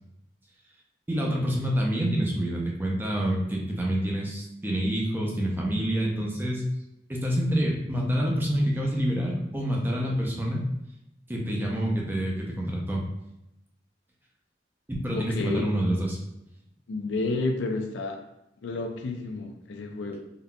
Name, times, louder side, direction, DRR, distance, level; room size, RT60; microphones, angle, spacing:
voice 1, 1.1-6.7 7.1-10.6 11.3-13.0 14.9-16.2, equal, 10° right, -2 dB, 0.5 m, -27 dB
voice 2, 15.1-15.7 16.9-18.2 18.6-20.2, left 3 dB, 80° left, 4 dB, 0.4 m, -30 dB
3.8 x 2.6 x 2.2 m, 0.86 s
head